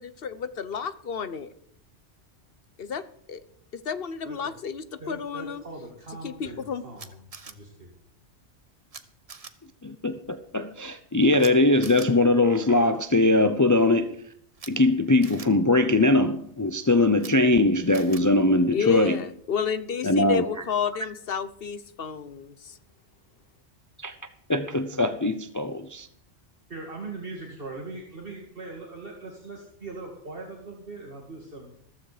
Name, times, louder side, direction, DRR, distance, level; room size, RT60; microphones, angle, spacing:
voice 1, 0.0-1.5 2.8-3.4 3.7-5.6 6.2-6.8 18.7-22.8, left 6 dB, 60° left, 1.1 m, -31 dB
voice 2, 5.0-8.0 26.7-31.7, right 3 dB, 55° right, 2.4 m, -40 dB
Camera, 7.0-7.5 8.9-9.0 9.3-9.5 11.4-11.5 11.8-12.1 14.5-14.7 15.2-15.5 17.1-17.3 17.9-18.2, right 4 dB, 35° right, 1.0 m, -42 dB
voice 3, 9.8-14.2 14.7-19.2 20.0-20.4 24.0-24.1 24.5-26.1, left 2 dB, 20° left, 0.6 m, -21 dB
15.0 x 14.0 x 5.0 m
omnidirectional pair, 1.2 m